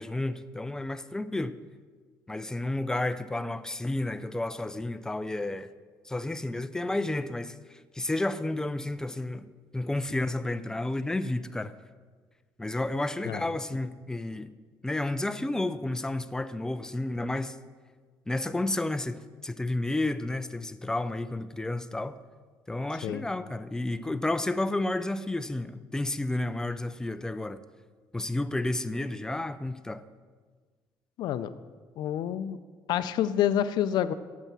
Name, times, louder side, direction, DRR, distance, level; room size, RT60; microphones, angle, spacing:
voice 1, 0.0-1.6 2.3-5.7 6.0-9.5 9.7-11.7 12.6-14.5 14.8-17.6 18.3-22.2 22.7-27.6 28.1-30.0, left 2 dB, 10° left, 0.4 m, -31 dB
voice 2, 31.2-31.5 32.0-32.6 32.9-34.1, left 10 dB, 70° left, 0.5 m, -28 dB
8.1 x 7.2 x 7.3 m
cardioid pair, 130°, 8 cm